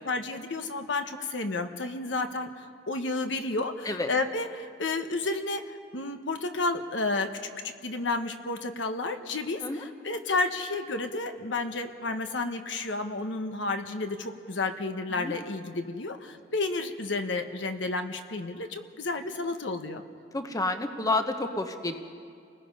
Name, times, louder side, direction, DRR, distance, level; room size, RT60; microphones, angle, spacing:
voice 1, 0.0-7.3 7.6-20.0, left 3 dB, 75° left, 7 dB, 1.2 m, -31 dB
voice 2, 20.3-21.9, left 2 dB, 20° left, 6 dB, 0.9 m, -29 dB
29.5 x 19.5 x 5.5 m, 2.3 s
head